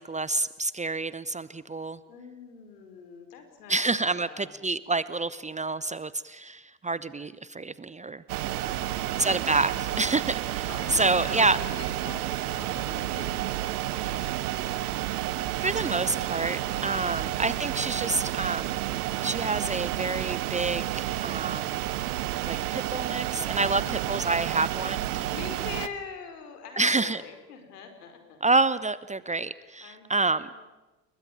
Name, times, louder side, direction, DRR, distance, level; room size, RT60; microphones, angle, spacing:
voice 1, 0.0-2.0 3.7-8.2 9.2-11.6 15.6-18.8 19.2-21.8 22.4-23.8 24.1-25.0 26.8-27.2 28.4-30.5, right 3 dB, 15° right, 17 dB, 0.9 m, -28 dB
voice 2, 2.0-4.7 8.7-9.4 10.6-15.0 23.6-24.4 25.3-28.4 29.8-30.6, left 6 dB, 70° left, 7 dB, 5.0 m, -45 dB
sound 1, 8.3-25.9, right 14 dB, 70° right, 1.3 m, -31 dB
29.5 x 22.0 x 9.0 m, 1.1 s
figure-of-eight pair, 60°, 48 cm